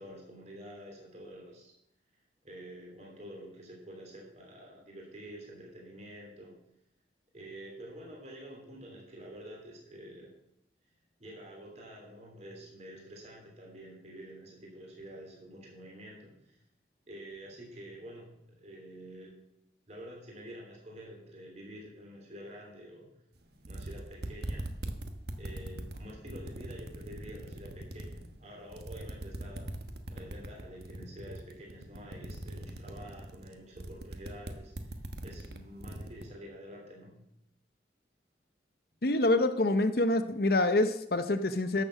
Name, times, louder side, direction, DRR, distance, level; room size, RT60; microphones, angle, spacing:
voice 1, 0.0-1.7 2.4-6.6 7.3-10.4 11.2-16.6 17.1-19.3 19.9-23.1 23.5-24.9 25.2-34.9 35.2-37.2, equal, 35° right, -1 dB, 3.1 m, -48 dB
sound 1, 23.4-23.5 23.6-28.3 28.7-36.2, right 1 dB, 60° right, 1.2 m, -40 dB
voice 2, 39.0-41.8, left 2 dB, 55° left, 10 dB, 0.7 m, -26 dB
11.5 x 6.9 x 7.4 m, 0.81 s
head